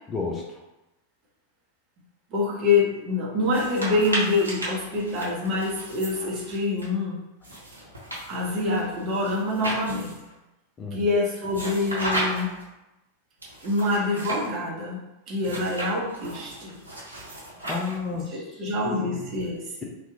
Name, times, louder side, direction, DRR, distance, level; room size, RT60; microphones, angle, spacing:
voice 1, 0.1-0.6 10.8-11.1 15.6-15.7 17.7-19.3, left 4 dB, 20° left, 0 dB, 0.5 m, -32 dB
voice 2, 2.3-7.2 8.3-10.1 10.9-12.6 13.6-15.0 15.3-16.7 18.1-19.6, left 2 dB, 35° right, -4 dB, 1.0 m, -26 dB
sound 1, 3.4-6.9 7.4-10.3 11.5-12.6 13.4-14.5 15.4-18.2, right 1 dB, 80° right, 0.9 m, -34 dB
2.8 x 2.4 x 3.5 m, 0.97 s
figure-of-eight pair, 90°, 0 cm